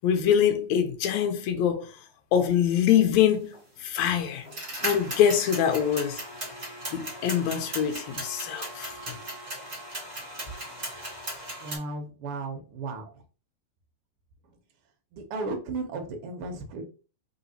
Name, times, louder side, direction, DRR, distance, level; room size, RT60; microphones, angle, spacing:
voice 1, 0.0-1.9 2.3-3.5 3.8-4.5 4.8-6.2 6.9-9.2, left 9 dB, 75° left, 1.9 m, -24 dB
sound 1, 3.5-3.6 4.4-11.8, right 1 dB, 20° right, 1.7 m, -37 dB
voice 2, 11.6-13.1 15.1-16.8, right 3 dB, 70° right, 1.4 m, -34 dB
4.0 x 3.9 x 2.7 m
omnidirectional pair, 3.5 m